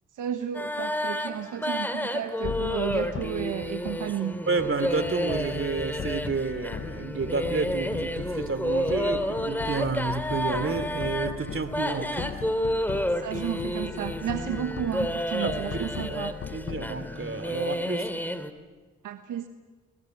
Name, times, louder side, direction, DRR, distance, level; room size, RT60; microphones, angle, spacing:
voice 1, 0.2-4.4 13.2-16.4 19.0-19.5, right 9 dB, 80° right, 7 dB, 1.3 m, -32 dB
sound 1, 0.5-18.5, equal, 5° left, 2.8 m, -31 dB
sound 2, 2.4-17.7, left 7 dB, 45° left, 0.9 m, -39 dB
voice 2, 4.5-12.4 15.4-16.2 16.5-18.1, right 4 dB, 40° right, 11 dB, 2.9 m, -30 dB
23.0 x 20.5 x 9.3 m, 1.3 s
supercardioid pair, 45°, 31 cm